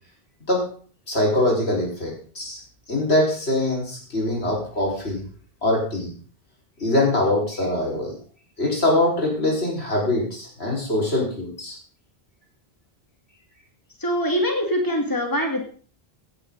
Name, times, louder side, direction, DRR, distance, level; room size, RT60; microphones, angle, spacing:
voice 1, 1.1-2.6 2.9-5.2 5.6-6.1 6.8-8.2 8.6-11.8, left 1 dB, 85° left, -2 dB, 5.6 m, -23 dB
voice 2, 14.0-15.7, equal, 20° left, 2 dB, 2.6 m, -23 dB
16.5 x 11.0 x 4.1 m, 0.42 s
omnidirectional pair, 1.1 m